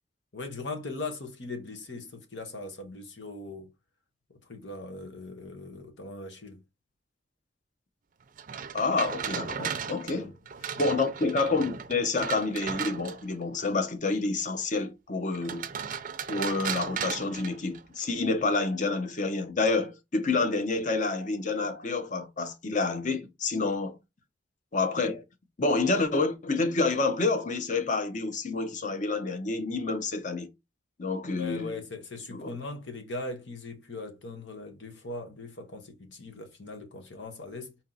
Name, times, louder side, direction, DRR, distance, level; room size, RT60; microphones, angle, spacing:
voice 1, 0.3-3.7 4.5-6.6 10.1-10.3 10.7-10.8 31.3-37.8, left 3 dB, 90° left, 1.2 m, -40 dB
sound 1, 8.4-13.4 15.3-18.1, right 7 dB, 50° right, 0.4 m, -36 dB
voice 2, 8.7-10.3 10.8-15.7 16.3-24.0 24.7-25.2 25.6-30.5 31.0-31.7 32.3-32.5, left 3 dB, 45° left, 0.7 m, -28 dB
4.4 x 2.9 x 3.9 m
head